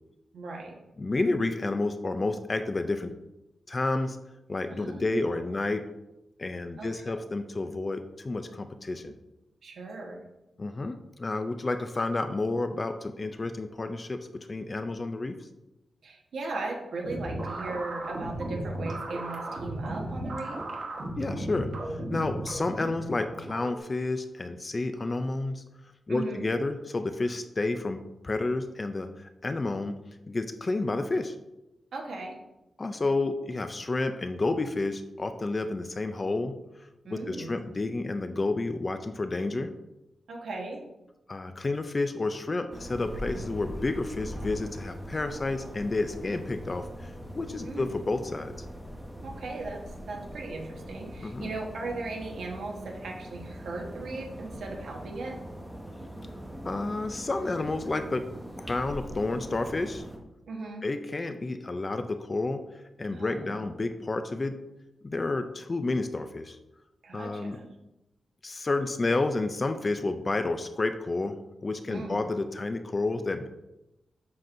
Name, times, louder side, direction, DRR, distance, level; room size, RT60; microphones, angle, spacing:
voice 1, 0.3-0.8 4.7-5.4 6.8-7.2 9.6-10.2 16.0-20.6 26.1-26.4 31.9-32.4 37.0-37.6 40.3-40.8 47.6-47.9 49.2-55.4 60.5-60.9 63.1-63.6 67.0-67.7 71.9-72.2, right 3 dB, 70° right, 0 dB, 1.2 m, -38 dB
voice 2, 1.0-3.1 3.7-4.2 4.5-5.8 6.4-9.2 10.6-15.4 21.2-25.6 26.1-28.0 28.2-30.0 30.3-31.3 32.8-36.6 37.1-39.7 41.3-48.7 51.2-51.5 56.7-58.3 58.6-60.0 60.8-62.6 63.0-64.5 65.0-66.6 67.1-67.6 68.4-71.4 71.6-73.5, left 2 dB, 25° left, 8 dB, 0.3 m, -30 dB
sound 1, 17.0-23.8, right 1 dB, 50° right, 1.2 m, -35 dB
sound 2, 42.7-60.2, equal, 10° right, 0.8 m, -42 dB
7.4 x 5.9 x 2.6 m, 0.94 s
wide cardioid pair, 170°, 0 cm